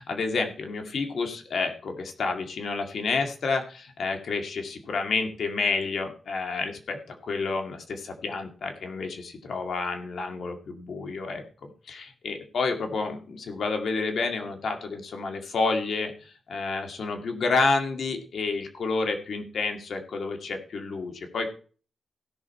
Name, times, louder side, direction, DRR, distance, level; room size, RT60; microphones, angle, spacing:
voice 1, 0.0-21.5, left 4 dB, 70° left, 5 dB, 2.2 m, -29 dB
16.0 x 6.6 x 4.3 m, 0.39 s
cardioid pair, 100°, 0 cm